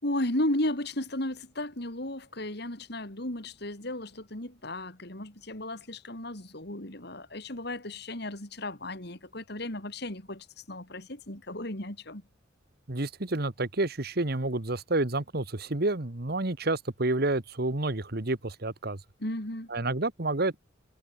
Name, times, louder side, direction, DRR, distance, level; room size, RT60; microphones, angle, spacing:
voice 1, 0.0-12.2 19.2-19.7, left 1 dB, 60° left, 4.4 m, -34 dB
voice 2, 12.9-19.0 19.7-20.6, right 2 dB, 55° right, 1.7 m, -29 dB
head